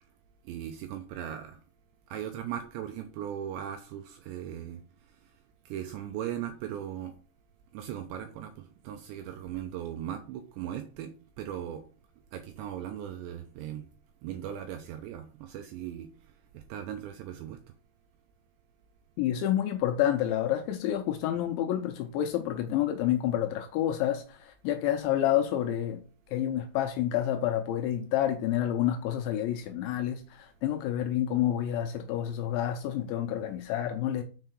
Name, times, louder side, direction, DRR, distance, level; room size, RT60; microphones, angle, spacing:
voice 1, 0.5-1.6 2.1-4.8 5.7-7.1 7.7-11.1 11.4-11.8 12.3-13.9 14.2-16.1 16.5-17.6, right 10 dB, 80° right, 2.6 m, -38 dB
voice 2, 19.2-26.0 26.3-34.2, left 11 dB, 80° left, 2.8 m, -29 dB
6.7 x 5.4 x 6.2 m
omnidirectional pair, 5.9 m